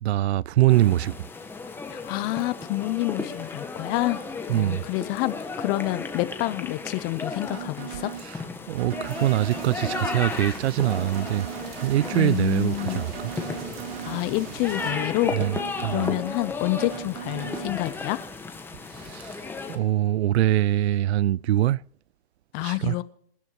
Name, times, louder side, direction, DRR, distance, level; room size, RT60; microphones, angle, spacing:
voice 1, 0.0-1.1 4.5-4.9 8.2-8.4 8.7-11.5 11.8-13.3 15.3-15.5 15.8-16.1 18.9-19.4 19.7-21.8 22.6-22.9, right 14 dB, 80° right, 0.5 m, -23 dB
sound 1, 0.7-19.8, left 4 dB, 5° left, 1.4 m, -35 dB
voice 2, 1.9-4.2 4.5-8.1 12.1-13.1 14.0-15.3 15.9-18.2 22.5-23.0, left 19 dB, 30° left, 0.8 m, -28 dB
sound 2, 7.5-8.2 8.8-10.2 10.8-12.2 12.8-14.2 14.8-16.2 16.8-17.7, right 10 dB, 45° right, 2.2 m, -38 dB
sound 3, 9.0-14.9, right 6 dB, 65° right, 4.2 m, -42 dB
26.5 x 10.5 x 3.1 m
hypercardioid pair, 150°, 32 cm